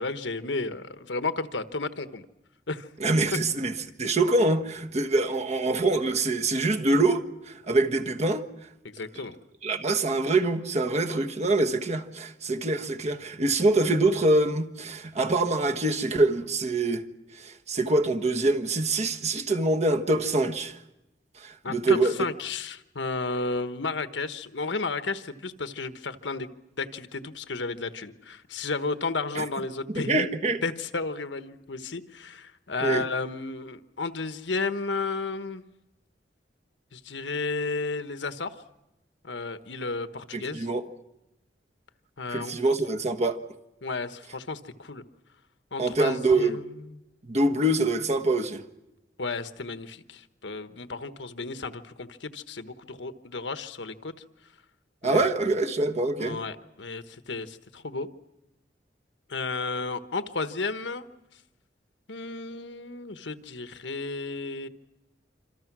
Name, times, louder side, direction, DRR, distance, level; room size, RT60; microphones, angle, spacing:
voice 1, 0.0-2.3 2.7-2.9 8.8-9.3 21.6-26.5 26.8-30.3 30.6-35.6 36.9-38.6 39.2-40.7 42.2-42.5 43.8-45.0 45.7-47.0 49.2-54.1 55.0-55.3 56.2-58.1 59.3-61.0 62.1-64.7, left 3 dB, 80° left, 1.2 m, -33 dB
voice 2, 3.0-3.7 4.0-8.4 9.6-17.0 17.3-20.8 21.4-22.2 29.4-29.5 29.9-30.6 32.8-33.0 40.3-40.8 42.3-43.4 45.8-46.6 47.2-48.6 55.0-56.4, right 2 dB, 40° right, 1.4 m, -25 dB
26.5 x 26.5 x 6.1 m
head